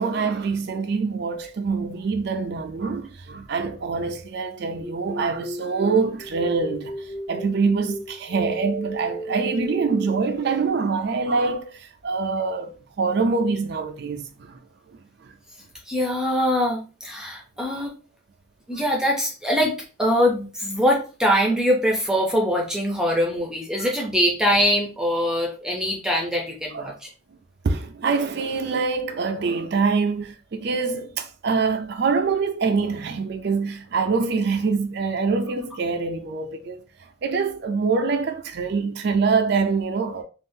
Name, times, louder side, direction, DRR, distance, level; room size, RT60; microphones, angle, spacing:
voice 1, 0.0-14.6 15.2-15.3 18.7-18.8 23.8-23.9 26.7-26.9 27.6-36.8 37.2-40.2, right 4 dB, 50° right, 0.4 m, -25 dB
sound 1, 4.8-10.7, right 1 dB, 35° left, 1.4 m, -34 dB
voice 2, 15.9-17.9 18.7-19.7 20.0-26.9, equal, 5° right, 0.6 m, -23 dB
3.5 x 2.4 x 2.6 m
head